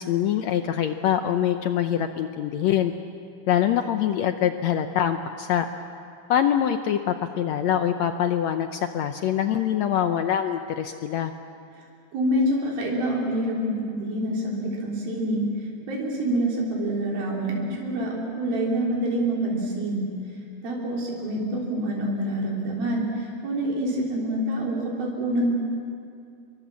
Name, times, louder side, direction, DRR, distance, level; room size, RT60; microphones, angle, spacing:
voice 1, 0.0-2.9 3.5-5.7 6.3-11.3, left 10 dB, 85° left, 7 dB, 1.5 m, -24 dB
voice 2, 12.1-20.1 20.6-25.5, right 1 dB, 85° right, -3 dB, 5.4 m, -26 dB
27.0 x 23.0 x 7.5 m, 2.4 s
omnidirectional pair, 4.1 m